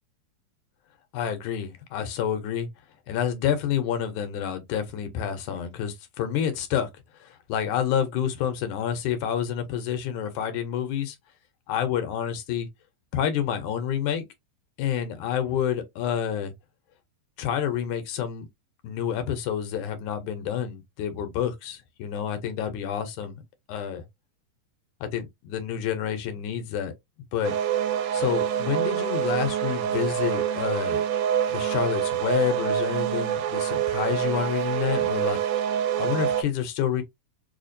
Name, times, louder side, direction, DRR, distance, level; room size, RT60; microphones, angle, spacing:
voice 1, 1.1-2.7 3.1-6.9 7.2-11.2 11.7-12.7 13.1-14.2 14.8-16.5 17.4-18.5 18.8-23.4 23.7-24.0 25.0-26.9 27.3-27.6 28.1-31.0 31.5-35.4 36.0-37.0, left 9 dB, 75° left, 1.9 m, -28 dB
sound 1, 27.4-36.4, right 9 dB, 80° right, 2.2 m, -26 dB
5.0 x 2.3 x 2.5 m
omnidirectional pair, 3.7 m